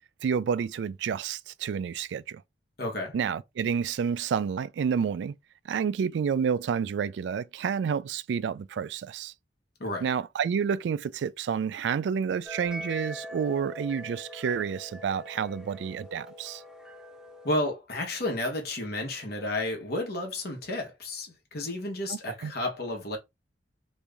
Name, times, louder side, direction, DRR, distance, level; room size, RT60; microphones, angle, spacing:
voice 1, 0.2-2.4 3.1-5.4 5.7-9.3 10.0-16.6 22.1-22.5, right 7 dB, 75° right, 0.3 m, -29 dB
voice 2, 2.8-3.1 9.8-10.1 17.4-23.2, left 1 dB, 60° left, 1.2 m, -32 dB
sound 1, 12.4-17.7, equal, 5° right, 0.5 m, -43 dB
3.1 x 2.6 x 3.4 m
head